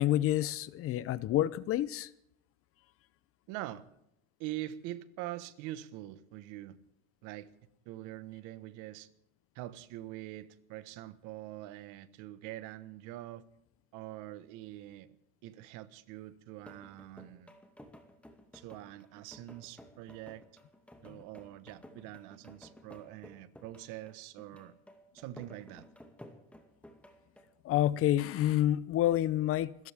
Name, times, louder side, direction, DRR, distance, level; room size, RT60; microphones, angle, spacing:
voice 1, 0.0-2.1 27.6-29.9, left 13 dB, 40° left, 0.7 m, -28 dB
voice 2, 3.5-3.9 4.4-6.8 7.2-7.5 7.8-9.1 9.5-13.4 13.9-15.2 15.4-17.5 18.5-20.4 21.0-24.7 25.1-25.9, right 15 dB, 65° right, 1.4 m, -44 dB
sound 1, 16.6-27.5, left 1 dB, 5° left, 2.3 m, -55 dB
28.0 x 14.5 x 3.6 m
supercardioid pair, 120°, 34 cm